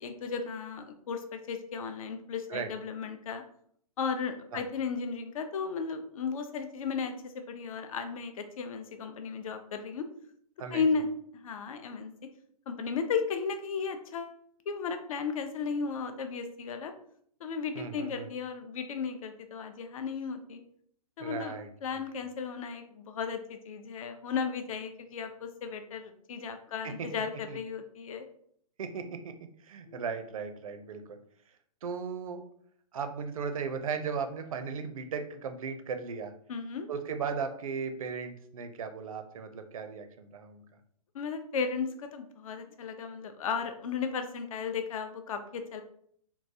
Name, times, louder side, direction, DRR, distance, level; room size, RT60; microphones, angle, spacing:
voice 1, 0.0-3.4 4.0-10.1 10.7-12.1 12.7-14.4 14.7-16.9 17.4-20.6 21.2-28.3 29.9-30.0 36.5-36.9 41.1-45.8, left 5 dB, 60° left, 7 dB, 0.5 m, -35 dB
voice 2, 17.7-18.3 21.2-22.0 26.8-27.1 27.5-27.6 28.8-29.3 29.6-31.2 31.8-32.4 32.9-36.3 36.9-40.6, right 6 dB, 60° right, 7 dB, 0.5 m, -36 dB
3.8 x 2.3 x 2.7 m, 0.64 s
figure-of-eight pair, 125°, 20 cm